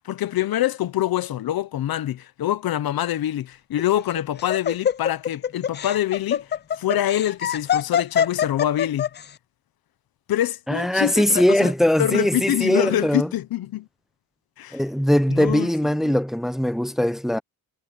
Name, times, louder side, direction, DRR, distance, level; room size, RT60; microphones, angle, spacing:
voice 1, 0.0-6.5 6.8-9.1 10.3-11.7 12.0-13.9 14.6-14.8 15.3-15.7 16.0-16.1, left 12 dB, 70° left, 0.9 m, -25 dB
Laughter, 3.8-9.2, left 8 dB, 30° left, 0.4 m, -24 dB
voice 2, 10.7-13.3 14.7-17.4, left 1 dB, ahead, 0.8 m, -21 dB
cardioid pair, 120°, 38 cm